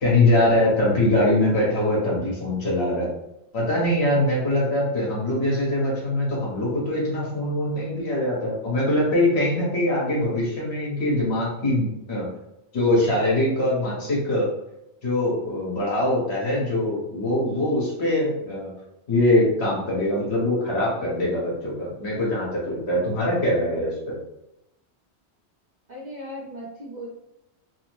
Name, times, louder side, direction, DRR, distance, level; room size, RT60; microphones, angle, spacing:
voice 1, 0.0-3.1 3.5-12.3 12.7-14.5 15.0-18.7 19.1-24.1, left 1 dB, 70° left, -5 dB, 1.3 m, -23 dB
voice 2, 25.9-27.1, equal, 45° right, -5 dB, 0.8 m, -37 dB
3.1 x 2.1 x 3.0 m, 0.88 s
omnidirectional pair, 1.2 m